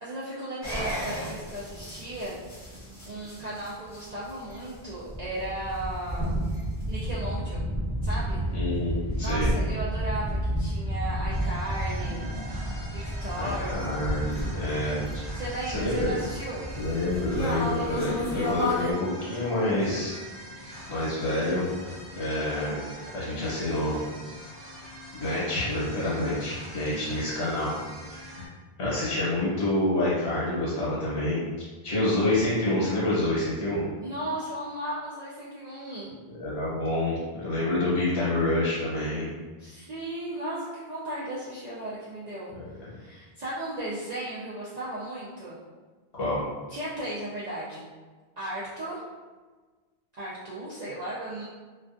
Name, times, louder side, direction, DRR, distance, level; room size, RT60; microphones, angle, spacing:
voice 1, 0.0-2.4 3.1-6.4 6.9-7.7 8.0-8.4 9.2-12.3 12.9-13.9 15.3-16.7 34.0-36.1 39.6-42.5 42.8-45.6 46.7-47.9 48.4-49.0 50.2-51.5, right 1 dB, 55° right, -9 dB, 0.5 m, -35 dB
sound 1, 0.6-18.9, equal, 20° left, 0.6 m, -31 dB
voice 2, 8.5-9.5 13.3-15.2 15.7-16.1 16.7-20.2 20.9-21.7 22.2-22.8 23.1-24.0 25.1-27.7 28.0-28.4 28.8-31.4 31.8-33.8 36.3-39.3 42.6-42.8 46.1-46.4, left 1 dB, 70° left, -8 dB, 1.0 m, -27 dB
sound 2, 11.3-28.5, equal, 85° right, 1.0 m, -43 dB
2.3 x 2.3 x 2.4 m, 1.4 s
omnidirectional pair, 1.1 m